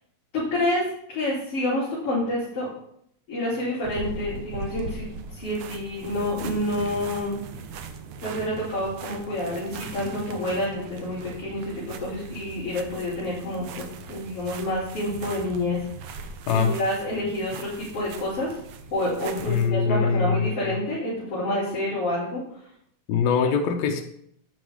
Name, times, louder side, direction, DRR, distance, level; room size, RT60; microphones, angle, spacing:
voice 1, 0.3-2.7 3.3-5.1 5.3-7.4 8.2-13.8 14.1-15.8 16.5-18.6 18.9-22.4, left 1 dB, 50° left, -8 dB, 3.8 m, -28 dB
sound 1, 3.8-19.7, right 4 dB, 70° right, 1.4 m, -40 dB
voice 2, 19.4-20.5 23.1-24.0, left 6 dB, 75° left, 3 dB, 2.1 m, -22 dB
9.7 x 9.2 x 3.6 m, 0.71 s
omnidirectional pair, 3.3 m